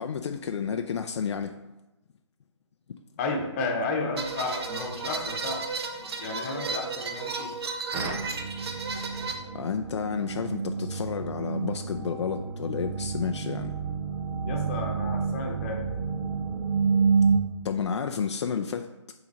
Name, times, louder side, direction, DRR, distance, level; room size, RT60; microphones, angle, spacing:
voice 1, 0.0-1.6 9.5-13.7 17.6-18.9, left 6 dB, 65° left, 6 dB, 0.5 m, -31 dB
voice 2, 3.2-5.6 6.2-7.5 14.4-15.8, left 3 dB, 25° left, 1 dB, 1.0 m, -32 dB
sound 1, 4.2-9.3, right 4 dB, 55° right, 0.9 m, -34 dB
sound 2, 7.9-17.4, right 5 dB, 15° right, 0.4 m, -29 dB
5.7 x 3.9 x 5.2 m, 1.0 s
hypercardioid pair, 155°, 16 cm